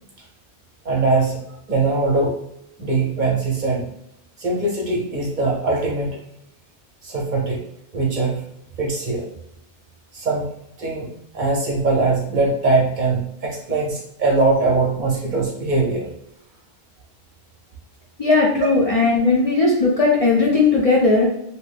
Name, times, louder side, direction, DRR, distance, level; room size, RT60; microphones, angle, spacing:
voice 1, 0.8-1.4 1.7-2.3 2.8-3.8 4.4-6.2 7.0-7.6 7.9-8.4 8.8-9.3 10.1-10.5 10.8-16.1 18.6-18.7, right 3 dB, 50° right, -2 dB, 0.7 m, -21 dB
voice 2, 18.2-21.3, left 3 dB, 45° left, -4 dB, 0.5 m, -17 dB
2.8 x 2.0 x 3.2 m, 0.77 s
omnidirectional pair, 1.1 m